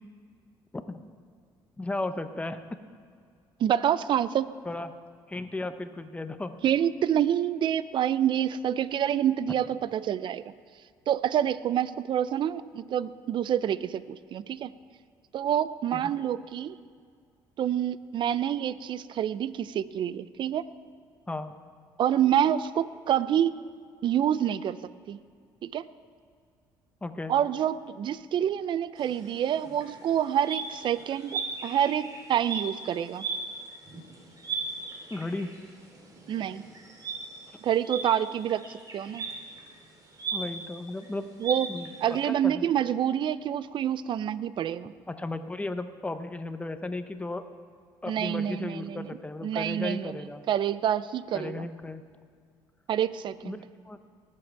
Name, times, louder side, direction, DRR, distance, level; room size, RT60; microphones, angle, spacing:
voice 1, 0.7-1.1 1.8-2.6 4.6-5.0 5.3-6.6 15.9-16.1 21.3-21.5 27.0-27.3 35.1-35.5 40.3-41.3 41.7-42.6 45.1-47.4 48.0-50.4 51.3-52.0 53.4-53.6 53.8-54.0, left 2 dB, 15° left, 9 dB, 0.8 m, -35 dB
voice 2, 3.6-4.5 6.6-10.4 11.1-14.7 15.3-16.8 17.6-20.7 22.0-23.5 24.0-24.8 25.1-25.2 25.6-25.9 27.3-33.3 36.3-36.6 37.6-39.3 41.4-41.7 42.0-44.9 48.1-49.2 49.4-50.2 50.5-51.7 52.9-53.6, right 10 dB, 55° right, 17 dB, 0.5 m, -27 dB
sound 1, 29.0-42.3, right 4 dB, 40° right, 2.8 m, -38 dB
19.5 x 7.6 x 4.6 m, 2.1 s
cardioid pair, 85°, 10 cm